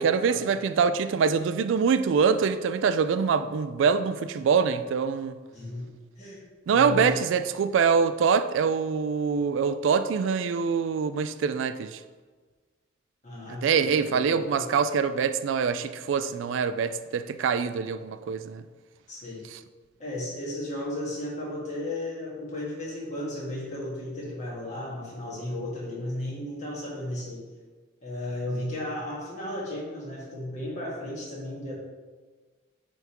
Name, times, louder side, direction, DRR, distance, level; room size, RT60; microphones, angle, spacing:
voice 1, 0.0-5.4 6.7-12.0 13.6-18.6, right 6 dB, 80° right, 12 dB, 0.3 m, -24 dB
voice 2, 5.5-5.9 6.2-7.5 13.2-14.7 19.1-19.4 20.0-27.4 28.0-31.7, left 1 dB, 35° left, -5 dB, 1.8 m, -34 dB
9.2 x 3.5 x 3.0 m, 1.4 s
head